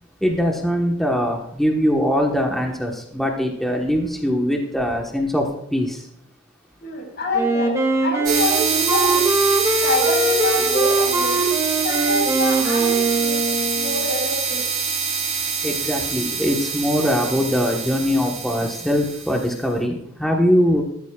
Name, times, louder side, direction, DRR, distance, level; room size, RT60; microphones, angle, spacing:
voice 1, 0.2-5.4 5.7-6.0 15.6-20.8, equal, ahead, 0 dB, 1.3 m, -21 dB
voice 2, 6.8-7.7 8.0-9.3 9.8-11.4 11.8-13.4 13.7-14.6, left 1 dB, 50° left, -2 dB, 5.1 m, -26 dB
Wind instrument woodwind instrument, 7.3-14.0, right 3 dB, 15° right, 2.1 m, -22 dB
sound 1, 8.2-19.5, right 6 dB, 40° right, 4.1 m, -25 dB
19.0 x 13.5 x 2.4 m, 0.74 s
head